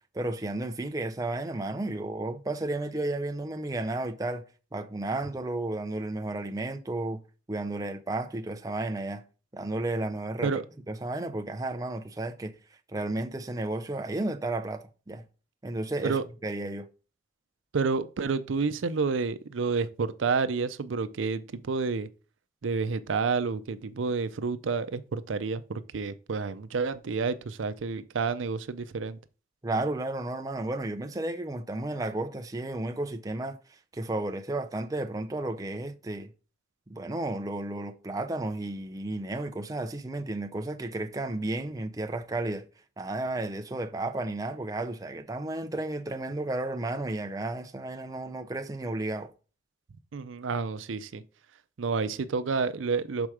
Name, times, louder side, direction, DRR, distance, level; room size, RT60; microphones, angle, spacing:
voice 1, 0.1-4.5 4.7-7.2 7.5-9.2 9.5-10.5 10.9-12.6 12.9-15.2 15.6-16.9 29.6-33.6 33.9-36.3 36.9-42.7 43.0-49.3, right 2 dB, 20° right, 0.5 m, -33 dB
voice 2, 17.7-22.1 22.6-29.2 50.1-51.2 51.8-53.3, right 4 dB, 85° right, 0.5 m, -29 dB
6.1 x 4.3 x 4.9 m
head